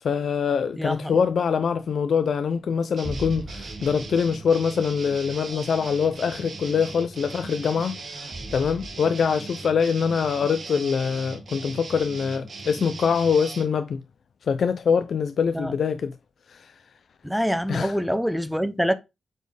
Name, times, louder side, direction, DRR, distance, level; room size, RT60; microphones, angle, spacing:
voice 1, 0.0-14.0 14.4-16.2 16.5-16.7 17.7-18.0, left 6 dB, 70° left, 0.4 m, -24 dB
sound 1, 3.0-5.8 6.3-6.4 8.3-8.9, right 1 dB, 25° right, 2.0 m, -39 dB
sound 2, 3.0-13.6, right 4 dB, 55° right, 1.9 m, -39 dB
voice 2, 17.2-18.9, equal, ahead, 0.6 m, -25 dB
8.1 x 4.4 x 3.3 m
wide cardioid pair, 140°, 0 cm